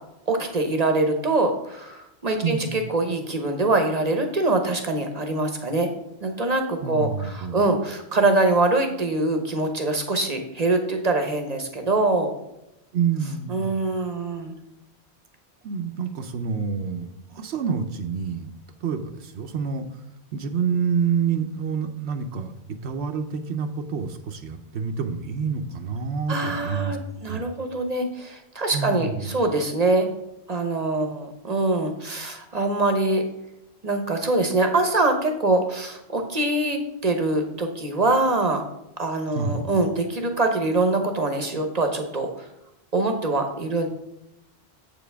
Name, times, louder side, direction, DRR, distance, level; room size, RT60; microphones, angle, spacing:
voice 1, 0.3-5.9 6.2-12.3 13.5-14.5 26.3-30.1 30.5-33.2 33.8-38.6 39.0-42.5 42.9-43.9, right 2 dB, 40° right, 5 dB, 0.9 m, -24 dB
voice 2, 2.4-2.8 6.8-7.7 12.9-13.7 15.6-18.5 18.8-19.9 20.3-22.5 22.8-27.0 27.3-27.5 28.7-29.4 39.3-39.7, right 6 dB, 80° right, 6 dB, 0.9 m, -28 dB
7.7 x 7.1 x 3.4 m, 0.86 s
omnidirectional pair, 1.1 m